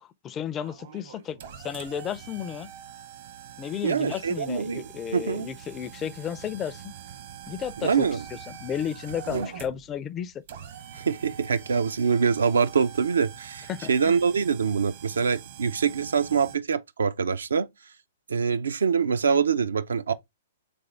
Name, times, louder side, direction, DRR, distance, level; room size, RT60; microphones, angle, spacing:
voice 1, 0.0-2.7 3.6-6.8 7.5-8.1 8.6-10.3 13.7-14.1, left 9 dB, 25° left, 0.4 m, -33 dB
sound 1, 0.6-16.6, right 9 dB, 55° right, 0.9 m, -44 dB
voice 2, 3.8-5.5 7.8-8.2 9.3-9.5 10.9-17.7 18.3-20.1, right 6 dB, 75° right, 0.4 m, -25 dB
3.6 x 3.4 x 3.3 m
figure-of-eight pair, 115°, 0 cm